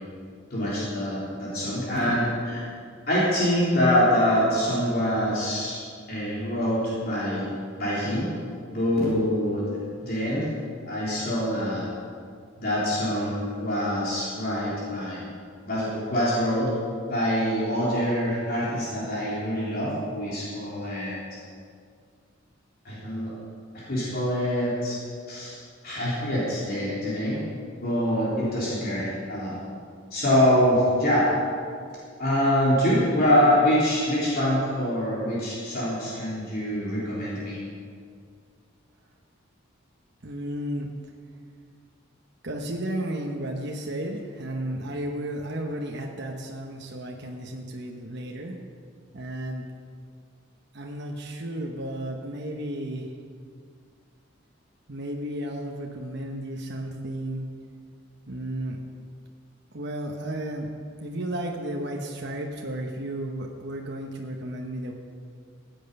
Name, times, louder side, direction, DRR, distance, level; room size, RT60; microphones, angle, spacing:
voice 1, 0.5-2.6 3.1-5.8 6.1-7.5 7.8-8.3 8.7-10.5 10.9-11.9 12.6-15.2 15.7-16.7 17.1-21.2 22.9-23.3 23.7-25.0 25.3-25.6 25.8-27.4 27.8-29.6 30.1-31.3 32.2-37.6, equal, 50° left, -8 dB, 3.5 m, -25 dB
voice 2, 40.2-40.9 42.4-48.6 49.1-49.7 50.7-53.1 54.9-57.5 58.3-58.8 59.7-60.7 61.0-64.9, right 1 dB, 60° right, 0 dB, 1.1 m, -33 dB
16.0 x 9.1 x 5.4 m, 2.1 s
head